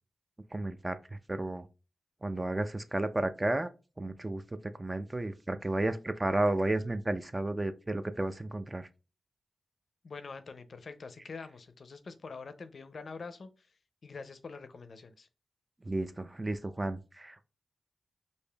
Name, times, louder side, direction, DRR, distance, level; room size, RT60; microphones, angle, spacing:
voice 1, 0.5-1.0 1.3-1.7 2.2-3.7 4.0-4.4 4.8-8.9 15.9-17.4, right 2 dB, 25° right, 0.4 m, -32 dB
voice 2, 10.0-13.5 14.0-15.3, left 4 dB, 65° left, 0.4 m, -45 dB
4.8 x 2.6 x 2.2 m
cardioid pair, 50°, 0 cm